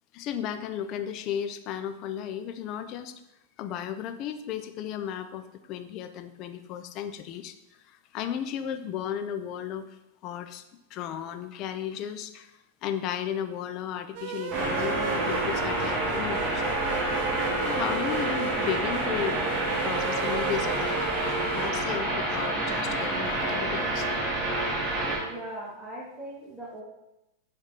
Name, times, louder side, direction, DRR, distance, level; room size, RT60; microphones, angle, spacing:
voice 1, 0.1-3.1 3.6-7.5 7.9-10.0 10.2-10.6 10.9-12.5 12.8-16.7 17.6-19.5 19.8-24.1, left 9 dB, 45° left, 9 dB, 0.6 m, -34 dB
sound 1, 14.2-21.7, right 9 dB, 55° right, 0.4 m, -35 dB
sound 2, 14.5-25.2, right 1 dB, 30° right, 2.2 m, -28 dB
voice 2, 25.1-26.8, right 1 dB, 10° right, -6 dB, 1.5 m, -40 dB
7.9 x 3.6 x 4.0 m, 0.93 s
hypercardioid pair, 105°, 0 cm